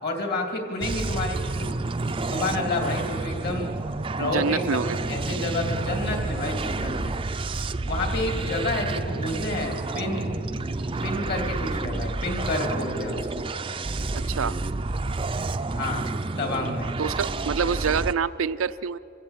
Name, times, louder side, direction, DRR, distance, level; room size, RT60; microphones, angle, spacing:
voice 1, 0.0-1.8 2.2-3.7 4.1-7.2 7.8-10.3 11.0-13.5 15.7-16.1 16.4-16.9, left 2 dB, 50° left, 3 dB, 3.0 m, -30 dB
sound 1, 0.8-18.1, right 3 dB, 25° right, 0.5 m, -29 dB
voice 2, 4.2-5.0 14.1-14.5 17.0-19.0, right 6 dB, 80° right, 12 dB, 0.5 m, -26 dB
27.5 x 16.0 x 7.4 m, 2.9 s
head